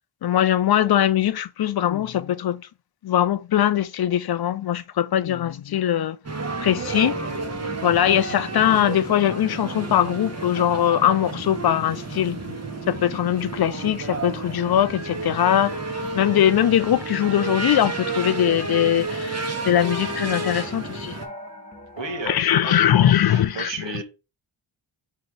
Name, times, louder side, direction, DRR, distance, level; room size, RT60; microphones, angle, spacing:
voice 1, 0.2-2.6 3.0-6.2 6.6-7.2 7.8-12.6 12.9-15.8 16.1-19.4 19.6-21.2 22.3-23.7, left 11 dB, 50° left, 0.5 m, -21 dB
sound 1, 6.2-21.3, right 3 dB, 30° right, 1.2 m, -31 dB
sound 2, 15.1-22.3, left 1 dB, 15° left, 1.5 m, -40 dB
voice 2, 22.0-24.0, right 4 dB, 60° right, 1.2 m, -34 dB
4.0 x 3.2 x 3.7 m
cardioid pair, 45°, 50 cm